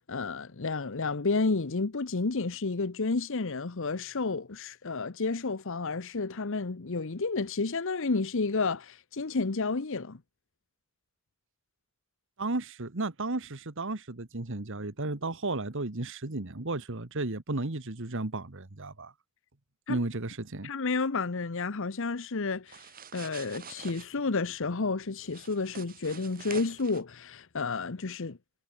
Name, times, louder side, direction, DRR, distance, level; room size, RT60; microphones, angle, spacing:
voice 1, 0.0-10.2 19.9-20.1 20.6-28.4, left 3 dB, 60° left, 0.9 m, -31 dB
voice 2, 12.4-19.1 19.9-20.7, right 2 dB, 60° right, 1.6 m, -34 dB
sound 1, 22.7-24.1 25.3-27.0, right 6 dB, 40° right, 5.8 m, -46 dB
head